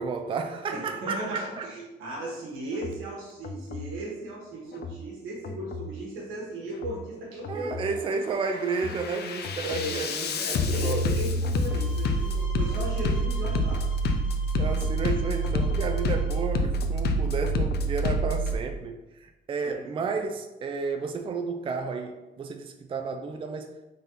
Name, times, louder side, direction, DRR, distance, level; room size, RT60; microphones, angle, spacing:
voice 1, 0.0-1.7 7.5-11.1 14.6-23.7, right 4 dB, 25° right, 5 dB, 0.3 m, -32 dB
voice 2, 0.7-8.0 9.6-13.8 19.6-20.1, right 2 dB, 90° right, -2 dB, 1.3 m, -36 dB
Bass drum, 2.7-3.0 3.4-3.9 4.7-5.0 5.4-5.9 6.7-7.0 7.4-7.9 8.4-18.6, equal, 55° left, 0.5 m, -28 dB
sound 1, 11.6-16.5, left 2 dB, 80° left, 1.0 m, -47 dB
3.7 x 2.8 x 3.8 m, 1.1 s
cardioid pair, 90°, 20 cm